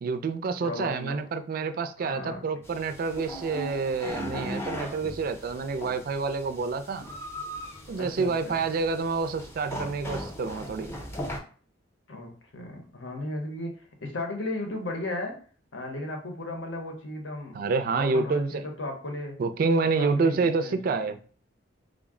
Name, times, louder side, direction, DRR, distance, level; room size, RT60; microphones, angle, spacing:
voice 1, 0.0-7.1 7.9-10.9 17.5-18.6 19.4-21.2, right 4 dB, 50° right, 0.3 m, -28 dB
voice 2, 0.6-1.2 2.0-2.4 8.0-8.6 12.1-15.4 15.7-17.6 18.0-19.4 20.0-21.1, left 2 dB, 80° left, 0.8 m, -35 dB
sound 1, 2.6-11.4, equal, 15° left, 0.5 m, -38 dB
3.7 x 2.0 x 3.6 m
head